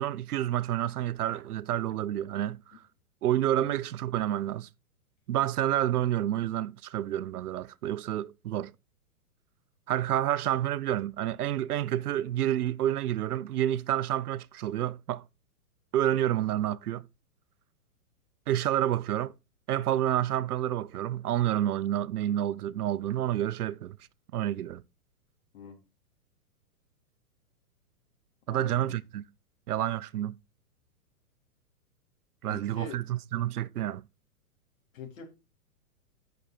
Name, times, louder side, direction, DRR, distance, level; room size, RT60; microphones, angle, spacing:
voice 1, 0.0-2.8 3.2-4.7 5.3-8.7 9.9-15.2 15.9-17.1 18.5-19.3 19.7-24.0 24.3-24.8 28.5-29.2 29.7-30.4 32.4-34.0, right 12 dB, 80° right, 0.7 m, -29 dB
voice 2, 28.5-29.0 32.5-33.0 34.9-35.2, left 5 dB, 60° left, 3.6 m, -44 dB
9.1 x 6.4 x 4.4 m
hypercardioid pair, 145°, 44 cm